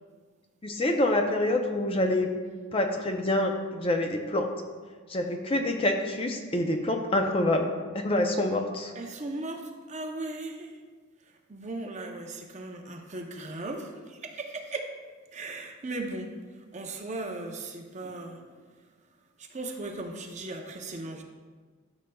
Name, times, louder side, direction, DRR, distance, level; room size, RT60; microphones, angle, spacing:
voice 1, 0.6-2.3 2.7-4.5 5.1-8.9, left 1 dB, 25° left, 4 dB, 0.5 m, -26 dB
voice 2, 8.9-10.8 11.2-14.9 15.3-18.4 19.4-21.2, right 2 dB, 30° right, 3 dB, 0.6 m, -37 dB
12.5 x 6.6 x 2.3 m, 1.5 s
head